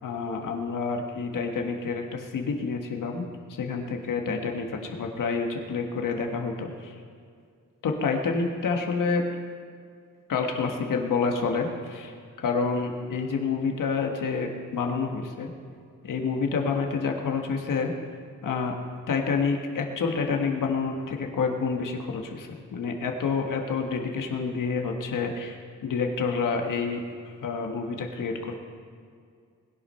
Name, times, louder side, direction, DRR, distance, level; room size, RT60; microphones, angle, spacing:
voice 1, 0.0-6.9 7.8-9.2 10.3-12.1 12.4-15.5 16.0-17.9 18.4-18.7 19.1-27.0 27.4-28.5, left 5 dB, 85° left, 2 dB, 1.6 m, -28 dB
20.5 x 8.6 x 5.6 m, 2.2 s
wide cardioid pair, 135°, 31 cm